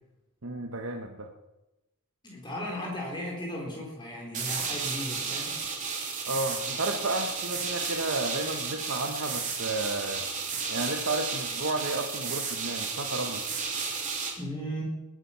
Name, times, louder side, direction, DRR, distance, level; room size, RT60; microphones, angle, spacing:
voice 1, 0.4-1.3 6.3-10.2 10.7-13.4, right 2 dB, 60° right, 4 dB, 1.2 m, -32 dB
voice 2, 2.2-5.5 14.4-14.8, equal, 20° left, -2 dB, 4.0 m, -36 dB
sound 1, 4.3-14.3, right 5 dB, 35° right, 3.1 m, -33 dB
20.0 x 10.0 x 5.8 m, 0.99 s
head